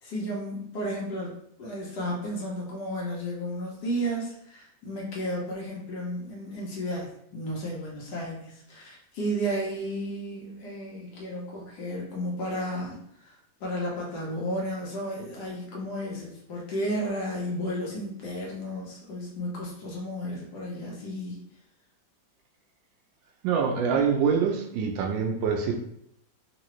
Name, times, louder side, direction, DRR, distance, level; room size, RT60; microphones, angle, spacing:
voice 1, 0.0-13.3 13.6-21.4, equal, 65° left, -3 dB, 1.4 m, -33 dB
voice 2, 23.4-25.8, right 6 dB, 85° right, 3 dB, 1.3 m, -25 dB
3.8 x 2.5 x 3.0 m, 0.73 s
omnidirectional pair, 2.0 m